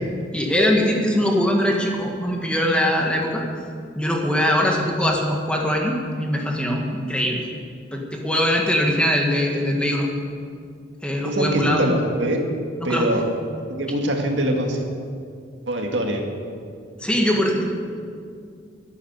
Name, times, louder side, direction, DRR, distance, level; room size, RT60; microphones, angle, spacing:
voice 1, 0.3-3.4 3.9-7.4 7.9-10.1 11.0-11.8 12.8-13.2 17.0-17.6, equal, 5° left, 0 dB, 1.7 m, -22 dB
voice 2, 11.2-12.4 12.8-13.2 13.8-14.8 15.7-16.2, right 1 dB, 70° right, 2 dB, 2.0 m, -22 dB
13.0 x 8.6 x 9.3 m, 2.3 s
head